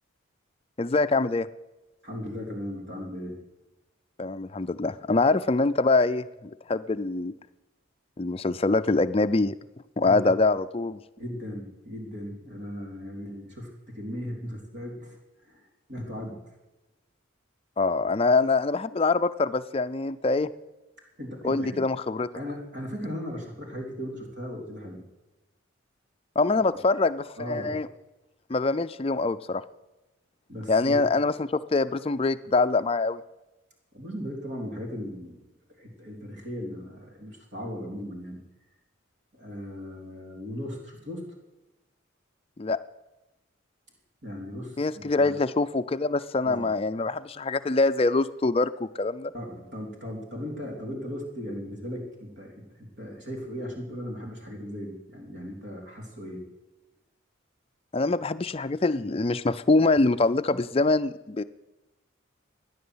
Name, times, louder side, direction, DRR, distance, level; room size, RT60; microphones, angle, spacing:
voice 1, 0.8-1.5 4.2-7.3 8.2-9.6 10.0-11.0 17.8-20.5 21.4-22.3 26.4-27.9 28.5-29.6 30.7-33.2 42.6-42.8 44.8-49.3 57.9-61.4, left 3 dB, 30° left, 13 dB, 0.4 m, -24 dB
voice 2, 2.0-3.4 10.0-10.3 11.2-16.4 21.2-21.8 22.3-25.0 27.4-27.8 30.5-31.2 33.9-35.4 35.8-38.4 39.3-41.2 44.2-45.4 46.4-46.7 49.3-56.4, equal, 55° right, 0 dB, 3.6 m, -37 dB
15.5 x 10.5 x 8.0 m, 1.0 s
head